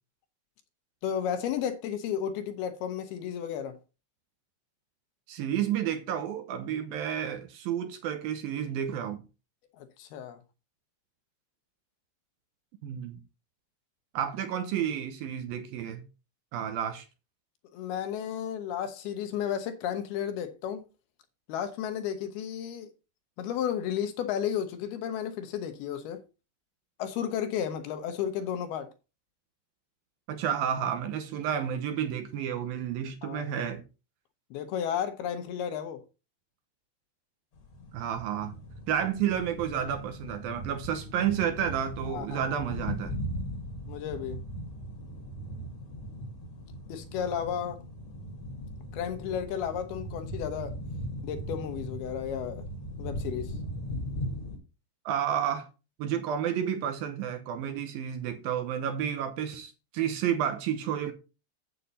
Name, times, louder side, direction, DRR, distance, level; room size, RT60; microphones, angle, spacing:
voice 1, 1.0-3.8 9.8-10.4 17.7-20.9 21.5-22.9 23.4-26.2 27.0-28.9 33.2-33.4 34.5-36.0 42.1-42.6 43.9-44.4 46.9-47.8 48.9-50.8 51.2-52.6 53.0-53.5, left 9 dB, 70° left, 2.8 m, -33 dB
voice 2, 5.3-9.2 12.8-13.2 14.1-16.0 16.5-17.1 30.3-33.8 37.9-38.5 38.9-43.2 55.1-55.7 56.0-61.1, right 9 dB, 70° right, 2.4 m, -31 dB
sound 1, 37.5-54.6, equal, 45° left, 2.2 m, -39 dB
8.2 x 8.0 x 4.1 m
omnidirectional pair, 5.0 m